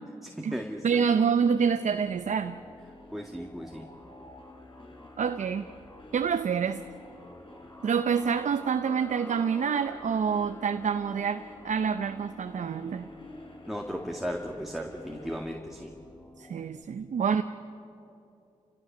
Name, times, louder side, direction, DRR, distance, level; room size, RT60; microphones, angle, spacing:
voice 1, 0.2-1.0 3.1-3.9 13.7-16.0, equal, ahead, 1 dB, 2.0 m, -36 dB
voice 2, 0.8-2.6 5.2-5.7 6.1-6.8 7.8-13.1 16.4-17.4, right 6 dB, 65° right, 8 dB, 0.7 m, -27 dB
sound 1, 1.3-15.4, left 1 dB, 40° left, 4.2 m, -52 dB
sound 2, 1.9-16.9, left 2 dB, 20° left, 1.8 m, -51 dB
29.5 x 16.0 x 6.8 m, 2.7 s
supercardioid pair, 45°, 14 cm